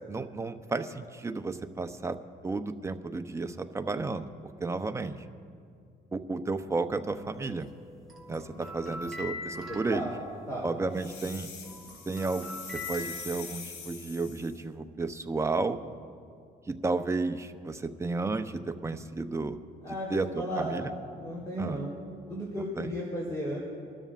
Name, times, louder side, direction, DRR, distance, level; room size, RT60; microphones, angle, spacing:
voice 1, 0.1-2.2 2.4-4.3 4.6-5.2 6.1-7.7 8.3-10.1 10.6-11.5 12.1-12.5 12.9-15.8 16.7-19.6 20.1-20.8 21.6-21.8 22.8-22.9, right 3 dB, 15° right, 7 dB, 0.7 m, -32 dB
sound 1, 7.0-11.1 11.4-13.9, left 2 dB, ahead, 3.9 m, -43 dB
voice 2, 9.7-10.1 10.5-10.7 19.8-20.8 21.1-21.9 22.3-23.6, equal, 20° left, -5 dB, 3.7 m, -35 dB
sound 2, 10.9-14.6, left 6 dB, 90° left, 1.6 m, -44 dB
25.5 x 12.5 x 2.5 m, 2.4 s
cardioid pair, 110°, 17 cm